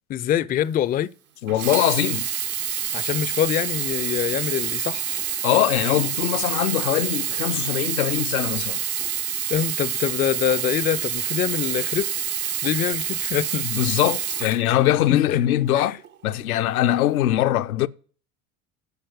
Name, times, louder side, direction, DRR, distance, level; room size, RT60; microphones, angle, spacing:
voice 1, 0.1-1.1 2.9-5.2 9.5-12.1 12.6-13.7 14.4-14.6 15.1-15.4 15.7-15.9, left 10 dB, 25° left, 0.4 m, -25 dB
voice 2, 1.4-2.3 5.4-8.8 13.7-17.9, left 13 dB, 85° left, 0.6 m, -22 dB
Sink (filling or washing), 1.5-15.2 16.0-16.1, right 10 dB, 80° right, 1.3 m, -27 dB
10.5 x 4.4 x 7.9 m
hypercardioid pair, 70°, 43 cm